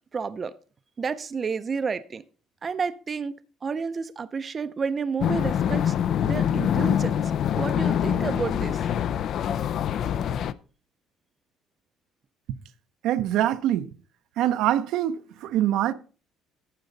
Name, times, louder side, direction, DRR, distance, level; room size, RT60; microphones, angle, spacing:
voice 1, 0.1-0.5 1.0-2.2 2.6-3.3 3.6-5.9 6.2-7.2 7.6-8.8, right 5 dB, 30° right, 0.5 m, -30 dB
sound 1, 5.2-10.5, left 9 dB, 55° left, 0.5 m, -25 dB
voice 2, 13.0-13.9 14.4-15.9, right 12 dB, 70° right, 0.7 m, -24 dB
11.5 x 8.3 x 4.0 m
cardioid pair, 125°, 0 cm